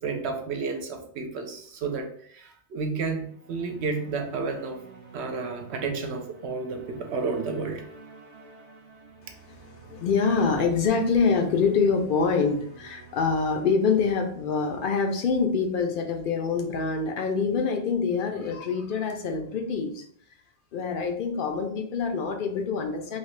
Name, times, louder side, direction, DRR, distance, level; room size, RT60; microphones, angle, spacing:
voice 1, 0.0-4.8 5.1-7.8, right 4 dB, 70° right, 4 dB, 0.9 m, -31 dB
sound 1, 3.0-15.5, right 4 dB, 40° right, 0.8 m, -49 dB
voice 2, 9.2-20.0 20.7-23.2, left 5 dB, 55° left, 4 dB, 0.6 m, -25 dB
3.2 x 2.7 x 3.2 m, 0.62 s
omnidirectional pair, 1.2 m